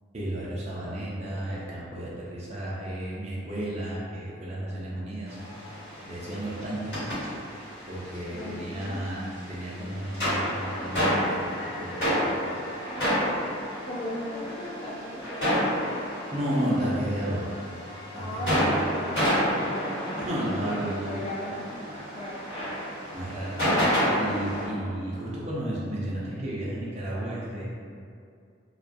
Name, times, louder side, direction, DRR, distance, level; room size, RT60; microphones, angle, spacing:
voice 1, 0.1-5.4 6.0-7.0 7.9-12.3 16.0-17.5 18.1-18.6 20.2-21.1 23.1-27.6, right 1 dB, 35° right, -7 dB, 0.4 m, -33 dB
sound 1, 5.3-24.7, equal, 65° left, 1.3 m, -30 dB
voice 2, 8.3-9.1 13.9-16.0 18.1-20.3 20.6-21.7 22.1-22.8, left 1 dB, 35° left, -5 dB, 0.3 m, -37 dB
2.3 x 2.2 x 2.5 m, 2.3 s
head